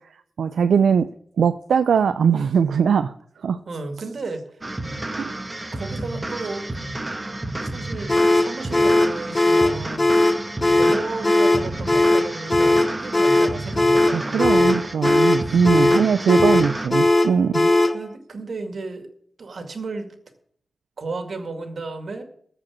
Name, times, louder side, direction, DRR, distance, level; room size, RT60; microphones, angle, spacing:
voice 1, 0.4-1.1 1.4-3.1 3.4-3.6 5.2-5.3 14.1-17.7, right 6 dB, 90° right, 10 dB, 0.4 m, -20 dB
voice 2, 3.7-4.8 5.7-6.7 7.6-10.3 10.7-14.5 15.7-16.1 17.9-19.1 19.4-20.2 21.0-22.2, right 3 dB, 60° right, 6 dB, 2.1 m, -33 dB
sound 1, 4.6-16.9, right 2 dB, 20° right, 1.4 m, -31 dB
sound 2, 8.1-18.0, left 2 dB, 30° left, 1.1 m, -18 dB
14.5 x 5.1 x 8.7 m, 0.63 s
cardioid pair, 70°, 0 cm